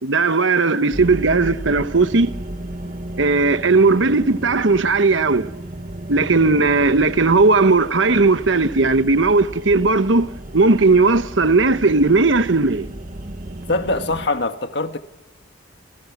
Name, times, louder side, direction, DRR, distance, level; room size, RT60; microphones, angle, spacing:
voice 1, 0.0-2.3 3.2-5.5 6.1-10.3 10.5-12.9, right 3 dB, 80° right, 1.1 m, -16 dB
sound 1, 0.9-14.3, right 1 dB, 45° right, 1.6 m, -34 dB
voice 2, 13.7-15.0, left 2 dB, 60° left, 1.8 m, -23 dB
29.5 x 29.0 x 6.0 m
head